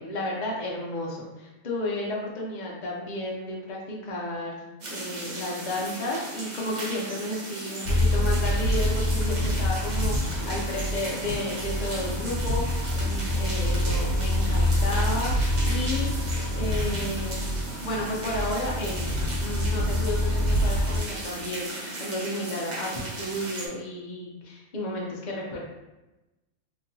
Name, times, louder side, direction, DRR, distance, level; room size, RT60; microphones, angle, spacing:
voice 1, 0.0-4.6 4.9-16.1 16.5-25.6, left 1 dB, 45° left, -3 dB, 0.6 m, -32 dB
sound 1, 4.8-23.7, right 2 dB, 55° right, 0.5 m, -37 dB
sound 2, 7.9-21.0, left 1 dB, 80° left, 1.0 m, -26 dB
2.9 x 2.7 x 2.6 m, 1.0 s
omnidirectional pair, 1.5 m